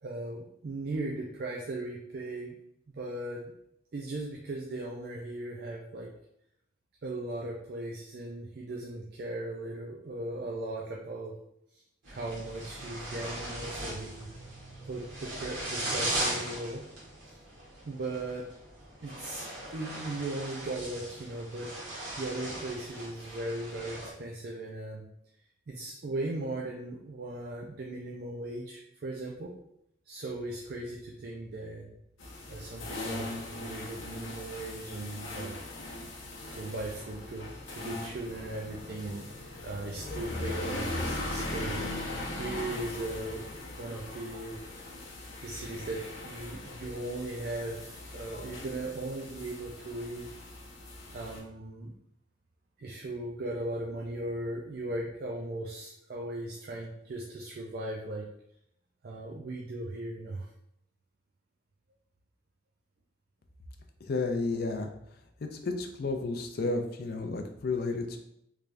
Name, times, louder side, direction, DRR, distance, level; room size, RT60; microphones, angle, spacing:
voice 1, 0.0-2.5 2.9-3.5 3.9-6.1 7.0-11.3 11.7-11.8 12.1-14.3 14.8-16.8 17.3-17.4 17.9-18.5 19.0-21.7 22.2-25.1 25.7-29.5 30.1-31.9 32.5-35.6 36.5-39.3 39.6-44.6 45.4-50.4 51.1-51.9 52.8-58.3 59.0-60.5, right 2 dB, 50° right, -1 dB, 0.4 m, -38 dB
sound 1, 12.0-24.1, right 1 dB, 80° right, 1.5 m, -38 dB
sound 2, 32.2-51.4, left 1 dB, 85° left, 0.7 m, -39 dB
voice 2, 64.0-64.9 65.4-68.2, left 3 dB, 50° left, 5 dB, 0.4 m, -32 dB
3.3 x 3.3 x 2.5 m, 0.75 s
head